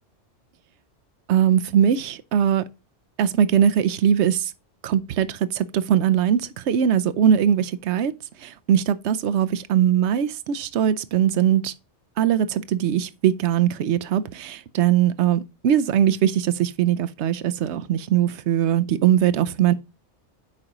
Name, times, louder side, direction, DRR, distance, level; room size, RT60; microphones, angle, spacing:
voice 1, 1.3-2.6 3.2-4.5 4.8-8.1 8.4-11.7 12.2-19.7, right 9 dB, 75° right, 0.9 m, -21 dB
8.5 x 5.0 x 2.9 m
omnidirectional pair, 1.2 m